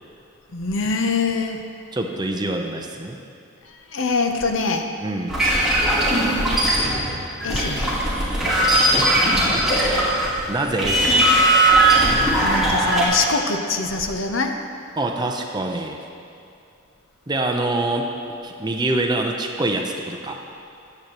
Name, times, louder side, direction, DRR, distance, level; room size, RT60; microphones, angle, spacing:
voice 1, 0.5-1.6 3.6-4.9 7.4-8.0 12.1-14.5, left 4 dB, 75° left, 5 dB, 0.8 m, -24 dB
voice 2, 1.9-3.2 5.0-5.3 8.9-9.9 10.5-11.2 15.0-16.0 17.3-18.1 18.4-20.4, right 2 dB, 20° right, 3 dB, 0.7 m, -25 dB
sound 1, 5.3-10.4 10.7-13.1, right 1 dB, ahead, 2.0 m, -18 dB
13.5 x 9.5 x 3.0 m, 2.6 s
head